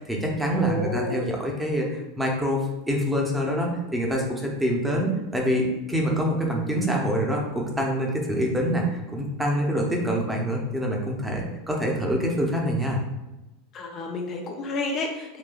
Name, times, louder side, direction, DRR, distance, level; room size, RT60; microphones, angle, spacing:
voice 1, 0.0-13.0, equal, 10° right, -1 dB, 0.7 m, -26 dB
voice 2, 0.5-1.2 13.7-15.4, left 3 dB, 40° left, 2 dB, 0.4 m, -30 dB
3.8 x 2.6 x 2.4 m, 1.0 s
figure-of-eight pair, 85°, 0 cm